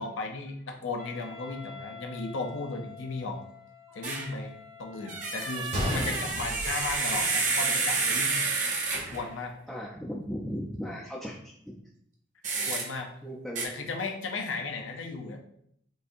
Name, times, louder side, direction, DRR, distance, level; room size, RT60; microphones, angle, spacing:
voice 1, 0.0-3.4 3.9-4.5 4.8-8.5 9.1-9.5 12.6-13.1 13.6-15.4, left 3 dB, 85° left, 3 dB, 0.7 m, -35 dB
Wind instrument woodwind instrument, 1.0-6.0, left 6 dB, 75° right, 1.5 m, -48 dB
sound 1, 4.0-4.3 5.1-9.3 12.4-12.9 13.6-13.7, right 4 dB, 40° right, 0.7 m, -29 dB
Gunshot gunfire, 5.7-7.7 8.0-8.1 8.8-9.0, equal, 55° right, 1.6 m, -33 dB
voice 2, 9.7-11.7 12.5-12.6 13.2-13.7, equal, ahead, -5 dB, 0.4 m, -37 dB
6.5 x 2.7 x 2.6 m, 0.71 s
head